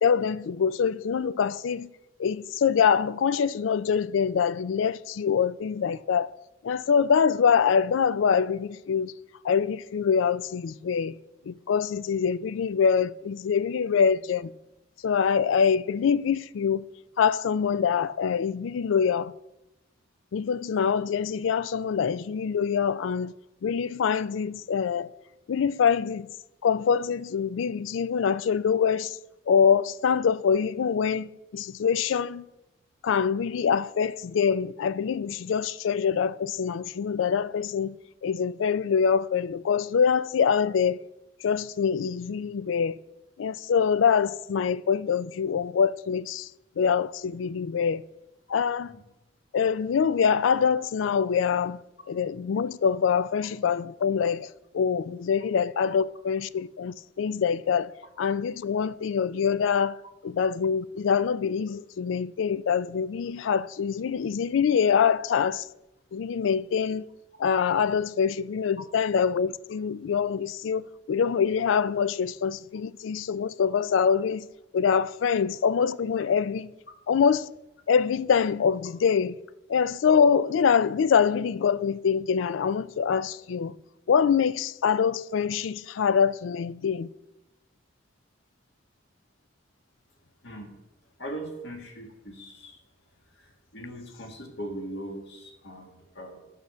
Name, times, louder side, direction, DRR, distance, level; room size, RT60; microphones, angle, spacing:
voice 1, 0.0-1.9 2.2-6.3 6.6-9.1 9.4-11.1 11.5-14.5 15.0-16.8 17.2-19.3 20.3-23.3 23.6-25.1 25.5-26.3 26.6-29.2 29.5-32.4 33.0-37.9 38.2-41.0 41.4-42.9 43.4-46.5 46.8-48.0 48.5-49.0 49.5-51.8 52.1-57.9 58.2-60.0 60.2-65.7 66.1-67.1 67.4-74.5 74.7-76.7 77.1-77.5 77.9-79.4 79.7-83.7 84.1-87.1, left 6 dB, 80° left, 0.4 m, -24 dB
voice 2, 91.2-92.8 93.4-96.4, right 1 dB, 65° left, 1.8 m, -40 dB
9.5 x 6.3 x 6.3 m
head